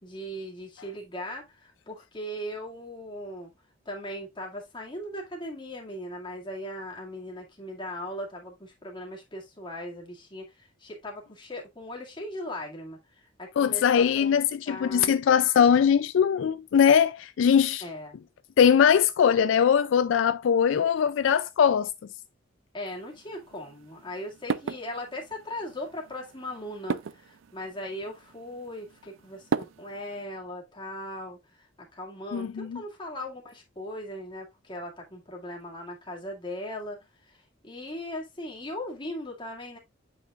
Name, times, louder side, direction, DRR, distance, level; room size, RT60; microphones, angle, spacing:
voice 1, 0.0-3.5 3.9-14.4 14.7-15.1 17.8-18.2 22.7-31.4 31.9-37.0 37.3-37.4 37.6-39.8, left 1 dB, 25° left, 2.1 m, -38 dB
voice 2, 13.6-17.8 18.6-21.9 32.3-32.8, left 7 dB, 70° left, 0.3 m, -21 dB
sound 1, 22.9-30.3, right 6 dB, 80° right, 0.4 m, -37 dB
8.1 x 5.8 x 2.4 m
head